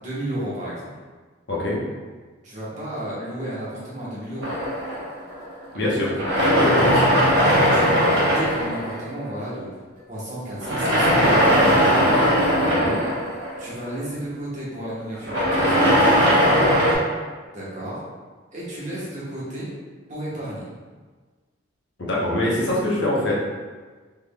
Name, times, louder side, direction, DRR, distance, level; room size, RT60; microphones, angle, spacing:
voice 1, 0.0-0.9 2.4-4.5 5.7-6.1 6.8-7.0 7.5-9.7 10.1-11.4 12.0-12.3 13.6-16.5 17.5-18.0 18.5-19.7 20.1-20.7 22.9-23.0, right 1 dB, 35° right, -8 dB, 1.0 m, -33 dB
voice 2, 1.5-1.8 5.7-6.1 6.5-7.0 12.7-13.0 22.0-23.3, left 1 dB, 60° left, -5 dB, 0.8 m, -23 dB
sound 1, 4.4-5.6 6.1-9.3 10.6-14.0 15.1-17.0, equal, 75° right, 1.1 m, -19 dB
3.5 x 3.3 x 2.2 m, 1.4 s
head